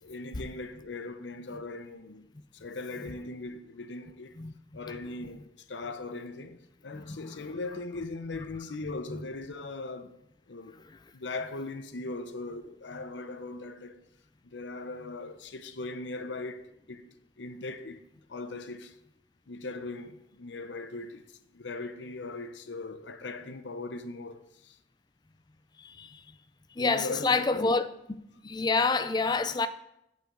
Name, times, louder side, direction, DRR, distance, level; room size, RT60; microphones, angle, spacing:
voice 1, 0.0-4.3 4.7-10.1 10.5-10.8 11.1-14.0 14.4-17.1 17.4-19.0 19.5-24.8 26.8-27.7, left 3 dB, 90° left, 0.7 m, -39 dB
voice 2, 6.9-7.4 8.8-9.2 25.8-26.2 26.8-27.9 28.4-29.7, left 4 dB, 25° left, 0.4 m, -28 dB
15.5 x 5.7 x 3.8 m
head